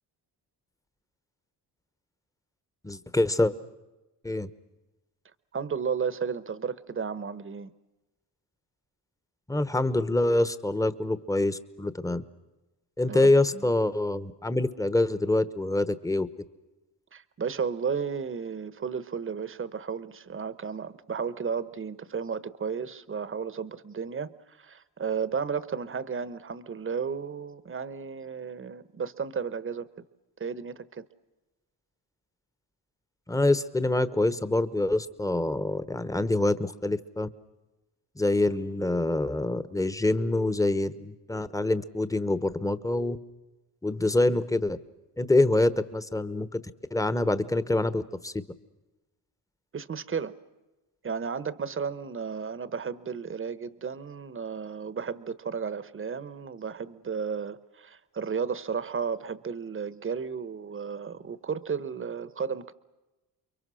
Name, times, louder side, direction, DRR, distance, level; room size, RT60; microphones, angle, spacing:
voice 1, 2.8-3.5 4.2-4.5 9.5-12.2 13.0-16.3 33.3-37.3 38.2-43.2 43.8-44.8 45.2-46.6 46.9-48.4, left 2 dB, 10° left, 14 dB, 1.0 m, -25 dB
voice 2, 5.5-7.7 13.1-13.7 17.1-30.0 30.4-31.1 49.7-50.3 51.0-62.7, right 6 dB, 30° right, 16 dB, 1.1 m, -33 dB
30.0 x 23.0 x 6.3 m, 1.1 s
cardioid pair, 110°, 41 cm